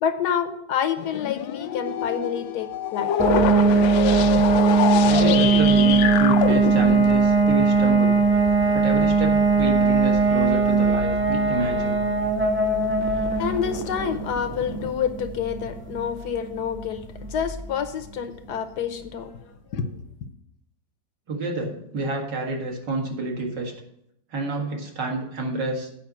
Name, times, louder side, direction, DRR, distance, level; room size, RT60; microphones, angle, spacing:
voice 1, 0.0-3.2 4.3-4.6 13.4-20.1, left 7 dB, 65° left, 9 dB, 1.2 m, -28 dB
sound 1, 1.0-7.8 9.2-9.3 10.9-11.5 12.4-14.9, left 11 dB, 85° left, 1.4 m, -27 dB
sound 2, 3.2-17.8, right 4 dB, 10° right, 1.0 m, -20 dB
voice 2, 5.0-8.2 8.7-12.0 21.3-23.7 24.3-25.9, right 2 dB, 65° right, 1 dB, 2.4 m, -28 dB
9.0 x 5.4 x 7.4 m, 0.77 s
omnidirectional pair, 2.1 m